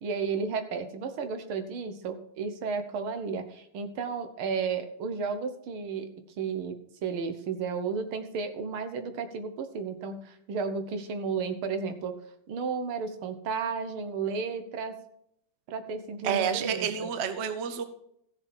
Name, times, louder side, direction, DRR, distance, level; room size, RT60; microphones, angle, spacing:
voice 1, 0.0-6.8 7.0-12.1 12.5-15.0 15.7-17.1, right 5 dB, 75° right, 8 dB, 1.9 m, -33 dB
voice 2, 16.2-17.8, right 7 dB, 50° right, 10 dB, 0.8 m, -29 dB
14.5 x 6.7 x 4.4 m, 0.73 s
omnidirectional pair, 2.3 m